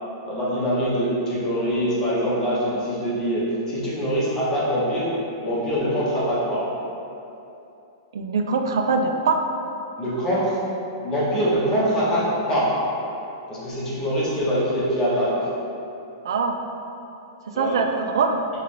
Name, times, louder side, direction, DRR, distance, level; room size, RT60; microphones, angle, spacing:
voice 1, 0.2-5.1 5.4-6.6 10.0-10.6 11.0-12.7 13.5-15.5 17.5-17.8, equal, 25° left, -8 dB, 1.0 m, -23 dB
voice 2, 8.1-9.4 16.2-16.6 17.6-18.4, right 4 dB, 80° right, 4 dB, 0.3 m, -22 dB
3.7 x 2.4 x 3.3 m, 2.8 s
hypercardioid pair, 135°, 2 cm